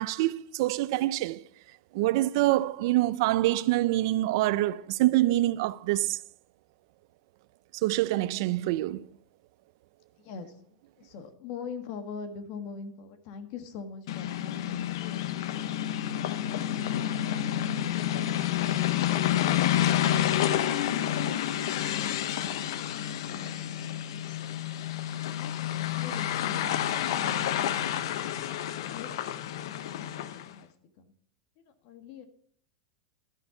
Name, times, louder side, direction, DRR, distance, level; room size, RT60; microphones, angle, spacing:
voice 1, 0.0-1.4 1.9-6.2 7.8-9.1, right 16 dB, 65° right, 0.4 m, -26 dB
voice 2, 10.2-15.2 18.0-24.4 25.3-26.9 28.8-29.1 29.4-31.1 31.6-32.3, left 5 dB, 55° left, 1.6 m, -44 dB
sound 1, 14.1-30.5, left 11 dB, 75° left, 0.7 m, -29 dB
12.5 x 5.4 x 7.0 m
supercardioid pair, 130°, 3 cm